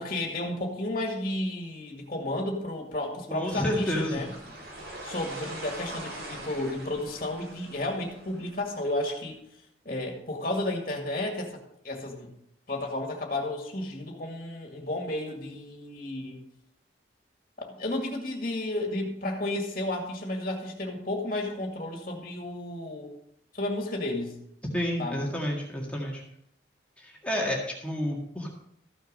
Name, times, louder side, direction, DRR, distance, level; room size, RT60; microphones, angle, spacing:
voice 1, 0.0-4.3 5.0-9.4 9.9-11.5 11.8-12.3 12.7-16.4 17.6-23.1 23.5-24.4 25.0-25.2, left 1 dB, 45° left, 1 dB, 2.0 m, -32 dB
voice 2, 3.3-4.2 24.7-26.2 27.0-28.5, equal, 5° left, -2 dB, 1.9 m, -30 dB
sound 1, 3.5-9.2, right 1 dB, 75° right, 4.7 m, -43 dB
14.0 x 6.7 x 5.4 m, 0.75 s
head